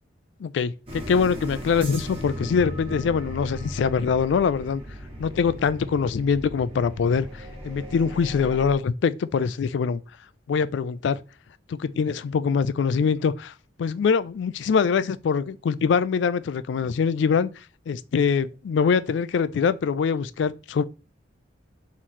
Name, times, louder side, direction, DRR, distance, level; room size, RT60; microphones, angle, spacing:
voice 1, 0.4-4.8 5.2-10.0 10.5-11.2 11.7-13.5 13.8-17.5 17.9-20.8, left 6 dB, 70° left, 0.3 m, -23 dB
sound 1, 0.9-8.7, equal, 30° right, 1.3 m, -37 dB
3.9 x 3.0 x 4.1 m
head